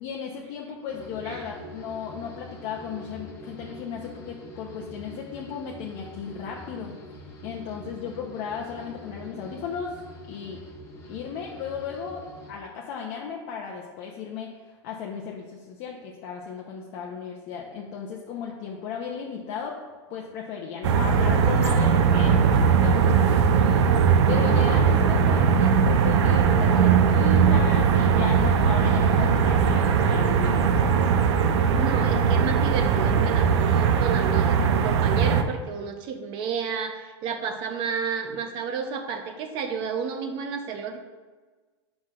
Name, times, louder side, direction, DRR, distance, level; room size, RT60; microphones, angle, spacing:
voice 1, 0.0-6.9 7.4-9.9 10.3-10.6 11.0-12.2 12.5-19.8 20.1-23.6 24.3-30.9, left 6 dB, 45° left, -2 dB, 0.8 m, -35 dB
sound 1, 0.9-12.5, left 1 dB, 20° left, 1.4 m, -44 dB
sound 2, 20.8-35.4, right 6 dB, 75° right, 0.7 m, -20 dB
voice 2, 31.7-41.0, right 6 dB, 35° right, 6 dB, 0.7 m, -31 dB
9.4 x 6.1 x 2.5 m, 1.4 s
supercardioid pair, 155°, 15 cm